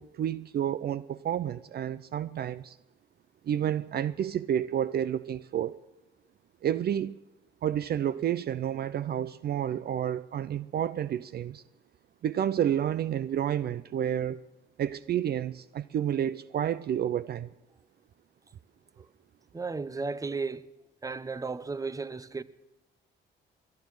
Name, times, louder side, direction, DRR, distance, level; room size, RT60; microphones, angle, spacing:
voice 1, 0.0-2.8 3.4-5.8 6.6-7.2 7.6-11.6 12.2-14.4 14.8-17.5, right 10 dB, 55° right, 0.5 m, -30 dB
voice 2, 19.5-20.7 21.0-22.4, right 4 dB, 15° right, 0.7 m, -34 dB
21.5 x 10.5 x 6.3 m
cardioid pair, 90°, 20 cm